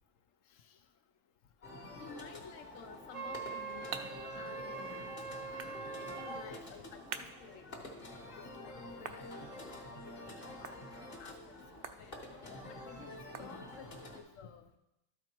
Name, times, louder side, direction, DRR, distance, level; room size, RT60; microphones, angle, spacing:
sound 1, 1.6-14.2, left 1 dB, 45° left, 1.6 m, -48 dB
voice 1, 2.0-5.4 6.0-7.8 8.2-10.7 11.2-11.4 12.0-13.9 14.1-14.7, left 6 dB, 80° left, 8 dB, 1.1 m, -53 dB
Wind instrument woodwind instrument, 3.1-6.5, right 5 dB, 75° right, 1.3 m, -43 dB
sound 2, 3.2-14.1, right 7 dB, 60° right, 0.7 m, -51 dB
12.5 x 4.8 x 4.5 m, 0.92 s
omnidirectional pair, 1.3 m